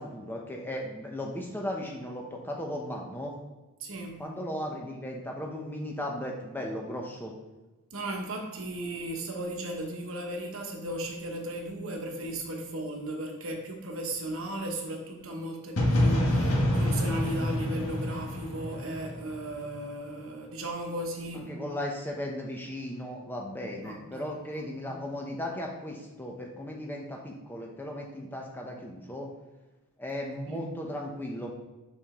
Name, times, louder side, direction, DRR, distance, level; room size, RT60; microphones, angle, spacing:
voice 1, 0.0-3.3 4.2-7.3 21.3-29.3 30.0-31.5, left 1 dB, 10° left, 0 dB, 0.9 m, -36 dB
voice 2, 3.8-4.3 7.9-21.5 23.8-25.0 30.5-30.7, right 1 dB, 60° right, 2 dB, 1.1 m, -36 dB
sound 1, 15.8-19.6, left 1 dB, 85° left, 1.5 m, -27 dB
5.4 x 5.0 x 3.7 m, 1.1 s
head